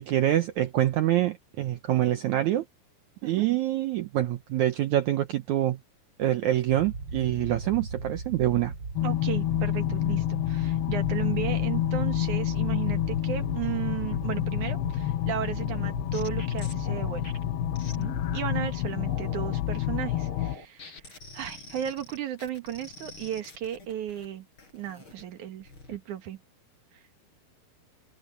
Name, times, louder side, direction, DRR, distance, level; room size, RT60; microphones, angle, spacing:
voice 1, 0.0-2.6 3.2-5.8 6.2-8.7, right 13 dB, 85° right, 1.7 m, -25 dB
sound 1, 6.7-18.7, right 3 dB, 40° right, 1.9 m, -38 dB
sound 2, 9.0-20.6, left 14 dB, 85° left, 2.8 m, -28 dB
voice 2, 9.0-17.2 18.0-24.5 24.7-26.4 26.9-27.0, right 10 dB, 60° right, 2.7 m, -35 dB
sound 3, 15.6-18.5 19.0-19.6 20.0-24.3 24.6-25.2 25.6-26.0, left 1 dB, 30° left, 6.3 m, -46 dB
open air
omnidirectional pair, 4.5 m